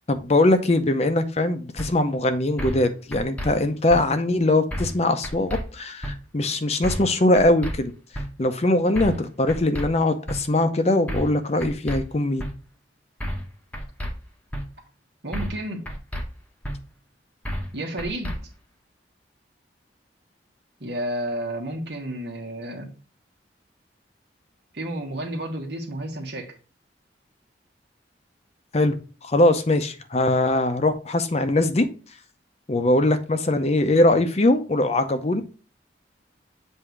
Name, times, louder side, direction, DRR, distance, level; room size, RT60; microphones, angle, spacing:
voice 1, 0.1-7.9 8.4-12.4 28.7-29.0 29.2-31.9 32.7-35.4, left 2 dB, 35° left, 0.6 m, -21 dB
sound 1, 1.8-1.9 2.6-2.8 3.1-3.5 3.9-4.0 4.7-5.0 5.2-5.6 6.0-6.1 6.8-7.1 7.4-7.7 8.1-8.3 9.0-9.2 9.5-9.9 10.3-10.4 11.1-11.3 11.6-12.0 12.4-12.5 13.2-13.5 13.7-14.1 14.5-14.6 15.3-15.6 15.9-16.2 16.6-16.8 17.4-17.7 18.0-18.4, equal, 10° left, 0.8 m, -30 dB
voice 2, 15.2-15.9 17.7-18.3 20.8-22.9 24.7-26.5, right 1 dB, 70° right, 1.6 m, -31 dB
7.8 x 2.7 x 4.6 m
head